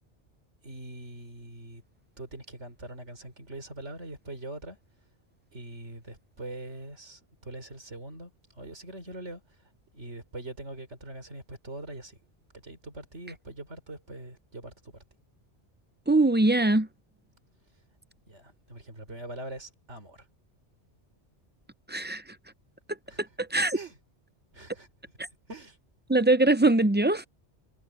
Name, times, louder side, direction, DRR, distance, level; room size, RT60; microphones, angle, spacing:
voice 1, 0.6-1.8 2.2-4.8 5.5-12.2 12.6-15.0 18.3-20.3 23.1-23.2 23.7-24.0 24.5-24.9 25.5-25.8, right 2 dB, 85° right, 4.5 m, -43 dB
voice 2, 16.1-16.9 21.9-22.2 23.2-23.8 26.1-27.2, right 2 dB, 15° right, 0.4 m, -22 dB
omnidirectional pair, 1.2 m